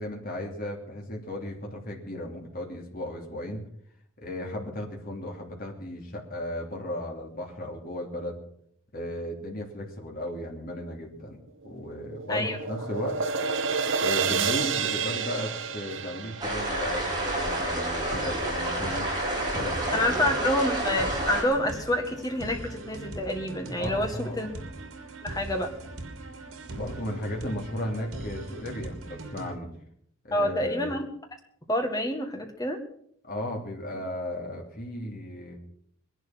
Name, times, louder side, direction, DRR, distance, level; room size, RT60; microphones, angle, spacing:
voice 1, 0.0-3.6 4.2-8.4 8.9-13.3 14.0-20.2 23.8-24.7 26.7-29.7 30.2-30.9 33.2-35.6, left 1 dB, 40° left, 1 dB, 2.9 m, -35 dB
sound 1, 11.6-18.0, right 5 dB, 60° right, 1.0 m, -30 dB
sound 2, 16.4-21.4, right 1 dB, 20° right, 4.6 m, -29 dB
sound 3, 18.1-29.5, right 2 dB, 85° right, 2.8 m, -40 dB
voice 2, 19.9-24.5 25.2-25.7 30.3-31.0 31.7-32.8, left 1 dB, 15° left, 4 dB, 1.8 m, -28 dB
21.0 x 11.0 x 6.0 m, 0.68 s
head